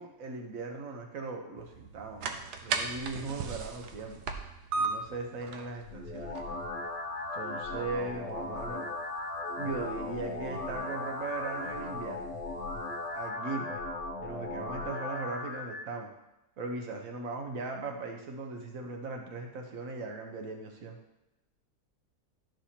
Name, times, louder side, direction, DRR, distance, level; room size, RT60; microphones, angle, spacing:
voice 1, 0.0-4.2 4.7-6.6 7.3-8.9 9.6-12.3 13.1-13.8 14.2-16.1 16.6-21.0, right 3 dB, 60° right, 2 dB, 1.3 m, -38 dB
sound 1, 1.6-13.3, right 4 dB, 75° right, 1.2 m, -40 dB
sound 2, 5.8-15.8, left 2 dB, 65° left, 1.2 m, -37 dB
11.5 x 6.1 x 2.9 m, 0.95 s
omnidirectional pair, 1.8 m